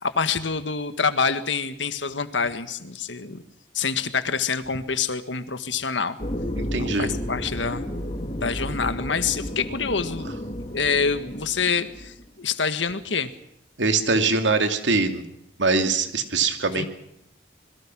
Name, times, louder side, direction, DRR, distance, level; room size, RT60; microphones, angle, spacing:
voice 1, 0.0-3.4 3.7-6.2 6.8-7.9 8.3-10.3 10.7-13.3 16.8-16.9, left 5 dB, 90° left, 10 dB, 1.7 m, -26 dB
sound 1, 6.2-12.2, equal, 35° left, 2.5 m, -32 dB
voice 2, 6.6-7.1 13.8-15.2 15.6-16.9, right 3 dB, 80° right, 7 dB, 2.6 m, -22 dB
26.5 x 22.0 x 6.2 m, 0.77 s
head